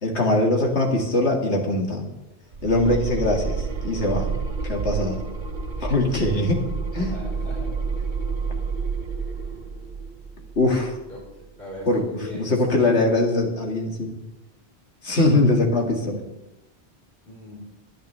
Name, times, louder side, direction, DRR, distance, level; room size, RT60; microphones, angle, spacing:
voice 1, 0.0-2.0 2.6-4.3 4.6-5.2 5.8-6.6 6.9-7.1 10.6-11.0 11.9-12.0 12.3-14.1 15.0-16.2, left 2 dB, 75° left, 1 dB, 2.4 m, -22 dB
sound 1, 2.5-11.4, right 5 dB, 45° right, 1.0 m, -30 dB
voice 2, 6.9-7.7 11.1-11.2 11.6-12.6 17.3-17.7, left 1 dB, 50° left, -6 dB, 4.3 m, -39 dB
21.0 x 10.5 x 3.4 m, 0.95 s
omnidirectional pair, 1.2 m